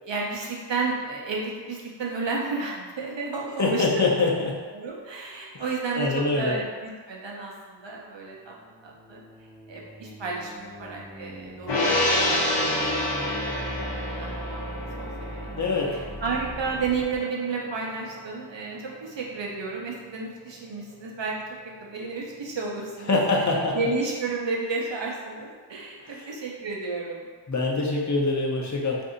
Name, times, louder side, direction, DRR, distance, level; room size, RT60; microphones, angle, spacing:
voice 1, 0.0-4.2 4.7-8.5 8.8-9.2 9.7-14.6 15.0-15.1 15.4-21.3 21.8-27.3, right 4 dB, 80° right, -2 dB, 0.7 m, -32 dB
voice 2, 3.6-4.3 5.5-5.6 5.9-6.6 15.6-15.9 23.1-23.8 26.0-26.3 27.5-29.0, left 3 dB, 40° left, -2 dB, 0.7 m, -24 dB
sound 1, 8.4-17.2, right 1 dB, 5° right, 0.6 m, -40 dB
Gong, 11.7-18.3 18.6-18.8, left 1 dB, 70° left, 0.7 m, -28 dB
2.6 x 2.6 x 3.8 m, 1.5 s
wide cardioid pair, 50°, 44 cm